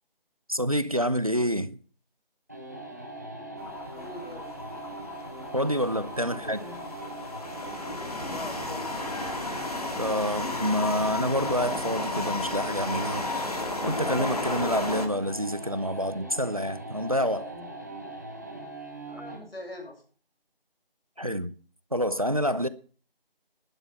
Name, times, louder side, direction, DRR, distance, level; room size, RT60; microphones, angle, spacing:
voice 1, 0.5-1.8 5.5-6.6 10.0-13.3 13.8-17.5 21.2-21.5 21.9-22.7, equal, 40° right, 0.6 m, -27 dB
sound 1, 2.5-19.5, right 1 dB, 20° right, 1.2 m, -41 dB
sound 2, 3.6-15.1, left 2 dB, 40° left, 2.2 m, -33 dB
voice 2, 3.9-4.6 6.3-6.8 8.2-8.9 19.0-20.0, left 1 dB, 80° left, 7.0 m, -42 dB
11.5 x 10.0 x 5.7 m
figure-of-eight pair, 175°, 30 cm